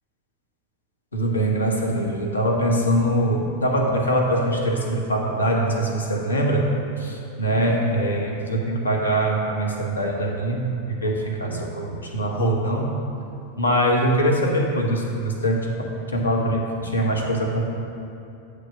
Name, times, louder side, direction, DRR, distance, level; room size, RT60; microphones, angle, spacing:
voice 1, 1.1-12.9 13.6-17.6, right 1 dB, 75° left, 0 dB, 0.9 m, -23 dB
8.7 x 3.2 x 6.5 m, 2.6 s
figure-of-eight pair, 90°, 0 cm